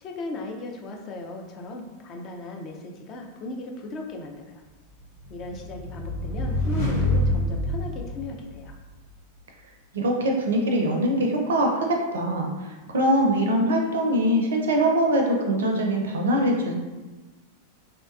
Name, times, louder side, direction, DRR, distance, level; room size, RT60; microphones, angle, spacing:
voice 1, 0.0-4.6 5.3-8.8, left 3 dB, 35° left, 1 dB, 0.3 m, -37 dB
sound 1, 5.0-8.8, left 1 dB, 60° left, 0.9 m, -27 dB
voice 2, 9.9-16.8, right 1 dB, 65° right, 1 dB, 0.4 m, -23 dB
2.6 x 2.2 x 2.3 m, 1.2 s
figure-of-eight pair, 90°, 0 cm